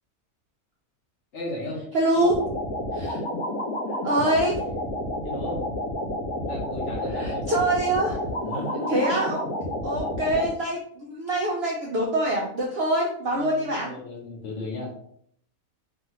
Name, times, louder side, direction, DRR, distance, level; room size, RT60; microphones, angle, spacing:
voice 1, 1.3-1.9 5.2-5.7 6.4-7.7 8.4-9.0 13.3-14.9, left 1 dB, 55° left, -2 dB, 1.0 m, -35 dB
voice 2, 1.9-2.3 2.9-3.2 4.0-4.6 7.2-8.2 8.9-9.4 9.8-14.0, right 1 dB, 70° right, -2 dB, 0.6 m, -24 dB
sound 1, 2.2-10.5, left 1 dB, 85° left, 1.1 m, -30 dB
2.7 x 2.4 x 2.8 m, 0.66 s
omnidirectional pair, 1.6 m